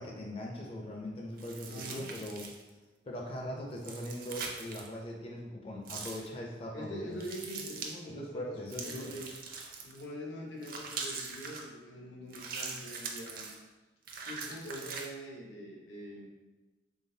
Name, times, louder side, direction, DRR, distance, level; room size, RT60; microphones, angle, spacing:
voice 1, 0.0-2.5 3.0-7.2 8.1-9.2, left 1 dB, 30° left, -1 dB, 0.4 m, -41 dB
sound 1, 1.4-2.7 3.8-4.9 5.9-6.3 7.2-8.0 8.7-10.0 10.6-11.6 12.3-13.6 14.1-15.1, right 4 dB, 55° right, 0.5 m, -42 dB
voice 2, 1.7-2.1 6.7-8.6 8.8-9.3 9.8-13.5 14.2-16.3, equal, 85° left, -2 dB, 0.9 m, -44 dB
3.8 x 3.4 x 2.6 m, 1.2 s
head